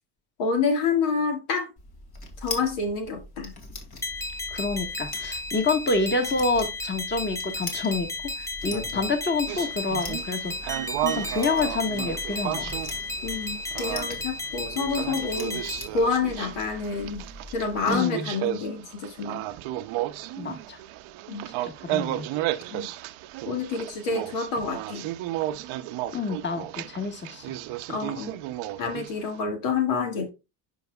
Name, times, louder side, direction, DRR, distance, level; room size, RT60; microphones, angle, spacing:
voice 1, 0.4-1.7 2.4-3.5 8.7-9.1 13.2-15.6 15.9-17.2 17.5-19.4 21.3-21.5 22.7-22.9 23.5-25.1 27.9-28.4 28.8-30.3, left 4 dB, 80° left, 1.9 m, -28 dB
sound 1, 1.8-18.0, left 2 dB, 50° left, 2.3 m, -42 dB
sound 2, 4.0-15.9, left 2 dB, 5° left, 0.5 m, -34 dB
voice 2, 4.5-12.7 17.9-18.3 20.4-20.8 21.6-22.3 26.1-27.5, left 3 dB, 20° left, 1.5 m, -28 dB
sound 3, 9.5-29.4, right 14 dB, 75° right, 0.7 m, -34 dB
11.0 x 4.6 x 2.3 m
supercardioid pair, 70°, 50 cm